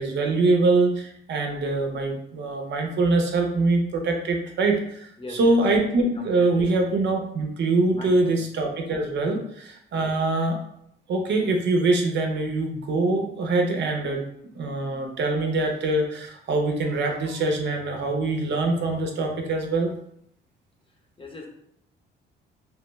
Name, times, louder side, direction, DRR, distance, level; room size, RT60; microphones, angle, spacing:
voice 1, 0.0-10.6 11.1-14.2 14.5-19.9, right 2 dB, 65° right, 2 dB, 0.7 m, -24 dB
voice 2, 5.2-5.6 6.1-6.7 7.9-8.4 9.9-10.2 21.2-21.5, left 2 dB, 25° left, 0 dB, 0.8 m, -39 dB
3.2 x 2.2 x 3.0 m, 0.72 s
cardioid pair, 90°, 20 cm